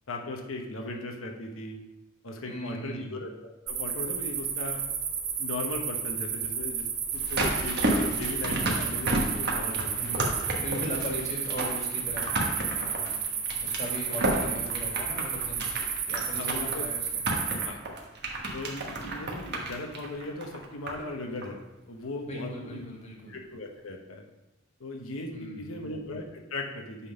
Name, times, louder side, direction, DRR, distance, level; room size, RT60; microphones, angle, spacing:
voice 1, 0.1-1.8 2.2-4.8 5.4-6.9 7.1-10.2 11.1-11.2 16.3-16.9 17.6-17.8 18.5-21.6 21.9-22.9 23.3-24.2 24.8-27.1, left 2 dB, 85° left, 2 dB, 1.1 m, -38 dB
voice 2, 2.4-3.2 9.9-13.2 13.6-15.7 16.0-17.7 22.2-23.3 25.3-26.0, equal, 35° left, -1 dB, 1.8 m, -39 dB
sound 1, 3.7-17.7, right 7 dB, 75° right, 1.3 m, -32 dB
sound 2, 7.1-21.1 21.4-21.5, right 1 dB, 55° right, 1.3 m, -32 dB
8.3 x 3.9 x 5.2 m, 0.96 s
head